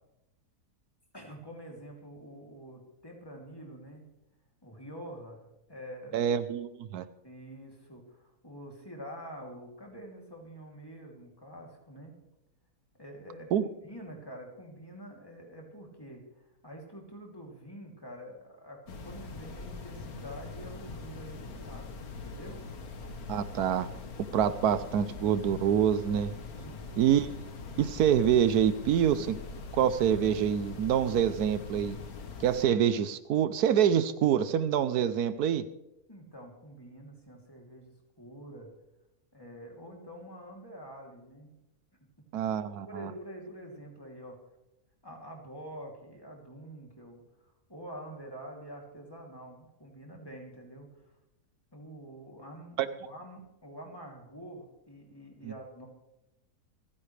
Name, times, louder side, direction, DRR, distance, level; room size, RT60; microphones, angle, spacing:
voice 1, 1.1-4.0 4.6-5.4 5.7-6.2 7.2-12.2 13.0-13.5 13.8-21.9 22.2-22.6 26.5-26.8 36.1-38.7 39.3-41.5 42.9-44.4 45.0-50.9 51.7-55.9, equal, 15° left, -1 dB, 3.0 m, -46 dB
voice 2, 6.1-7.0 13.5-13.7 23.3-23.9 24.3-26.3 27.0-27.3 27.8-29.4 29.7-32.0 32.4-35.6 42.3-43.1 52.8-52.9 55.4-55.5, right 9 dB, 80° right, 13 dB, 1.2 m, -26 dB
sound 1, 18.9-32.6, left 4 dB, 70° left, 1.8 m, -42 dB
27.5 x 10.0 x 3.3 m, 0.90 s
omnidirectional pair, 1.6 m